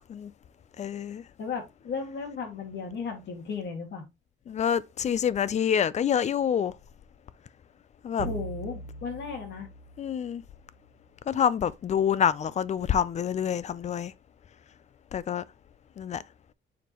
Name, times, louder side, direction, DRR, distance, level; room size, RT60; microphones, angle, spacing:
voice 1, 0.8-1.2 4.5-6.7 8.0-8.3 10.0-10.4 11.3-14.1 15.1-15.4 16.0-16.2, left 8 dB, 35° left, 0.4 m, -27 dB
voice 2, 1.4-4.1 8.2-9.7, left 5 dB, 60° left, 2.1 m, -35 dB
sound 1, 8.2-10.8, right 3 dB, 90° right, 1.5 m, -41 dB
7.1 x 4.6 x 3.0 m
cardioid pair, 150°, 21 cm